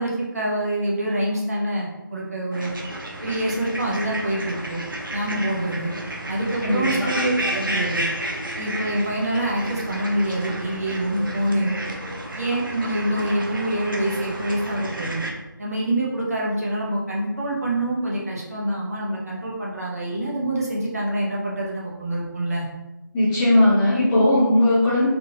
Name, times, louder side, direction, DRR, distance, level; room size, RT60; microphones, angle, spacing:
voice 1, 0.0-2.7 3.2-4.8 5.1-5.9 6.3-8.1 8.6-11.8 12.3-15.2 15.6-22.7, right 1 dB, 45° right, -4 dB, 0.9 m, -26 dB
sound 1, 2.5-15.3, right 1 dB, 75° right, 0.8 m, -32 dB
voice 2, 6.6-7.4 23.1-25.1, left 1 dB, 10° left, -13 dB, 0.7 m, -19 dB
3.7 x 2.4 x 2.7 m, 1.0 s
figure-of-eight pair, 160°, 11 cm